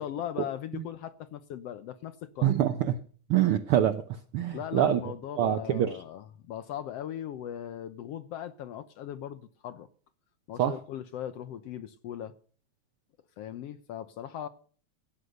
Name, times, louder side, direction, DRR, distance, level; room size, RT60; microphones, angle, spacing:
voice 1, 0.0-2.6 4.5-9.9 10.5-12.4 13.4-14.5, left 10 dB, 70° left, 1.6 m, -39 dB
voice 2, 2.4-2.9 3.3-4.0 4.3-5.0 5.4-5.9 10.6-10.7, right 11 dB, 75° right, 1.3 m, -24 dB
16.5 x 9.4 x 6.5 m
omnidirectional pair, 3.4 m